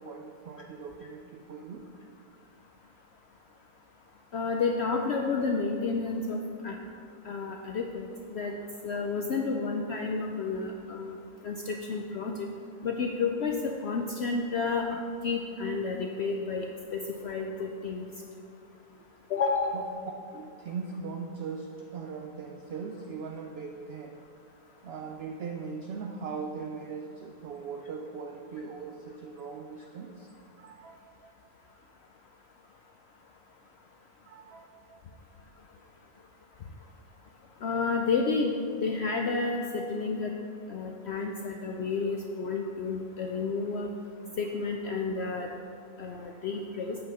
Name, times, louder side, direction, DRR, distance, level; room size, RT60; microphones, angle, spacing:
voice 1, 0.0-1.9 19.7-19.8 20.3-24.2 24.8-30.3 30.6-31.3 34.2-35.0, right 5 dB, 65° right, 3 dB, 0.6 m, -40 dB
voice 2, 4.3-6.4 6.6-6.8 7.2-8.5 8.8-11.2 11.4-12.3 12.8-14.9 15.2-16.7 16.9-18.0 19.3-19.8 37.6-38.5 38.8-40.4 40.7-43.9 44.4-45.5 46.0-47.0, left 4 dB, 70° left, 2 dB, 0.6 m, -30 dB
8.0 x 5.6 x 5.3 m, 2.5 s
omnidirectional pair, 1.6 m